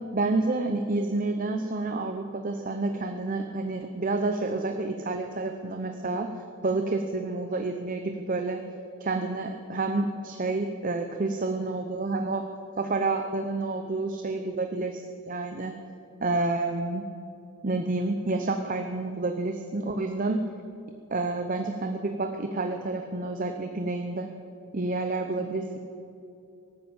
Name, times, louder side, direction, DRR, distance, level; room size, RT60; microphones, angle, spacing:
voice 1, 0.1-6.3 6.6-8.6 9.0-12.4 12.8-15.7 16.2-17.0 17.6-20.4 21.1-24.3 24.7-25.8, right 2 dB, 40° right, 5 dB, 0.7 m, -29 dB
18.0 x 8.9 x 8.4 m, 2.7 s
head